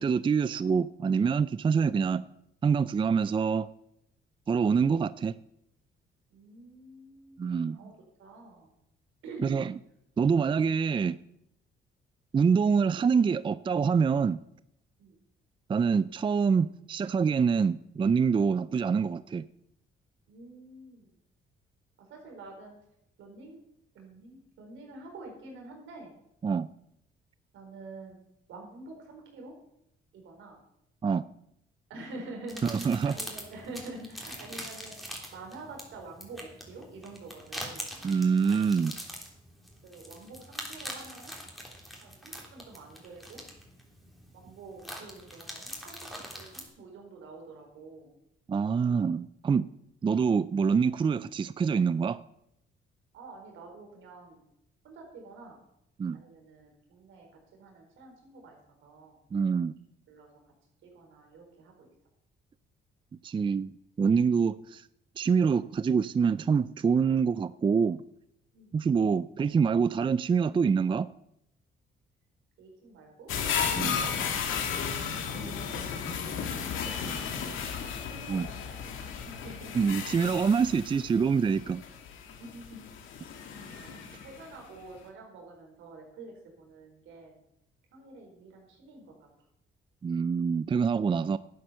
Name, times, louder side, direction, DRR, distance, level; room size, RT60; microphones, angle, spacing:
voice 1, 0.0-2.2 2.6-3.7 4.5-5.3 7.4-7.8 9.4-9.8 10.2-11.2 12.3-14.4 15.7-19.4 26.4-26.7 31.0-31.2 32.6-33.1 38.0-38.9 48.5-49.7 50.0-52.2 56.0-56.2 59.3-59.7 63.2-64.8 65.2-68.0 68.7-71.1 73.7-74.1 78.3-78.5 79.7-81.8 90.0-91.4, right 6 dB, 25° right, 17 dB, 0.4 m, -26 dB
voice 2, 6.3-7.9 8.2-8.7 9.2-9.5 15.0-15.2 20.3-21.1 22.0-22.7 23.2-23.6 23.9-26.2 27.5-28.2 28.5-29.5 30.1-30.6 31.9-34.9 35.3-38.0 39.8-41.3 42.0-43.4 44.3-46.0 46.3-48.1 53.1-54.4 54.8-55.6 56.1-57.3 57.5-59.1 60.1-60.3 60.8-61.9 68.5-68.9 72.6-73.3 75.1-77.3 78.1-79.8 80.1-80.2 82.4-82.9 83.5-87.4 87.9-89.1, right 2 dB, 80° right, 1 dB, 4.5 m, -47 dB
sound 1, 32.5-46.6, equal, ahead, 3.3 m, -43 dB
sound 2, 73.3-84.5 84.9-85.0, left 7 dB, 85° left, 2.0 m, -34 dB
11.5 x 8.7 x 6.8 m, 0.78 s
cardioid pair, 90°, 20 cm